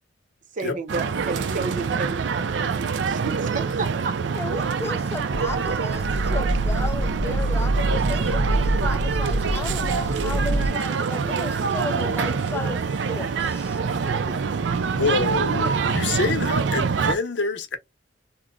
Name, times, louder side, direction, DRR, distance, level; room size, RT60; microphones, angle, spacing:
voice 1, 0.5-4.2 14.1-14.4, right 4 dB, 45° right, 0.7 m, -32 dB
sound 1, 0.9-17.1, right 5 dB, 80° right, 0.5 m, -25 dB
voice 2, 4.4-13.8, left 3 dB, 15° left, 0.3 m, -34 dB
sound 2, 5.3-10.7, right 1 dB, 35° left, 0.7 m, -25 dB
voice 3, 14.9-17.8, left 3 dB, 80° left, 0.8 m, -26 dB
3.0 x 2.0 x 3.7 m
head